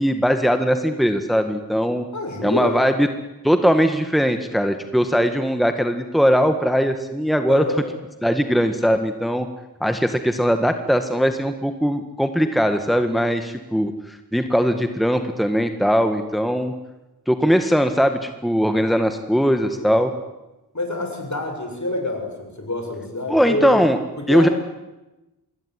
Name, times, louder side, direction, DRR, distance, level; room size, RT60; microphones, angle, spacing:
voice 1, 0.0-2.1 2.4-3.1 3.4-7.6 8.2-9.5 9.8-16.7 17.3-20.1 23.3-24.0 24.3-24.5, equal, ahead, 8 dB, 1.7 m, -20 dB
voice 2, 2.1-2.8 7.5-7.9 19.7-20.1 20.7-23.7 24.2-24.5, left 1 dB, 50° left, 4 dB, 7.3 m, -27 dB
25.5 x 22.5 x 9.8 m, 1.0 s
wide cardioid pair, 55°, 38 cm